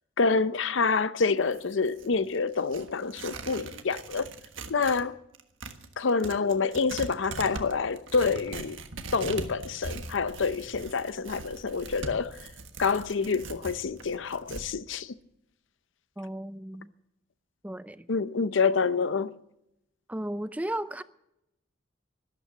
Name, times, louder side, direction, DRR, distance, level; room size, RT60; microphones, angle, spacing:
voice 1, 0.2-4.3 4.7-5.2 6.0-8.8 9.1-12.5 12.8-15.1 18.1-19.4, left 4 dB, 70° left, 0.7 m, -27 dB
Tearing, 1.4-5.1 5.3-14.7, right 3 dB, 75° right, 1.4 m, -41 dB
voice 2, 16.2-16.9 17.6-18.1 20.1-21.0, right 1 dB, 5° right, 0.5 m, -35 dB
12.5 x 12.0 x 8.5 m
head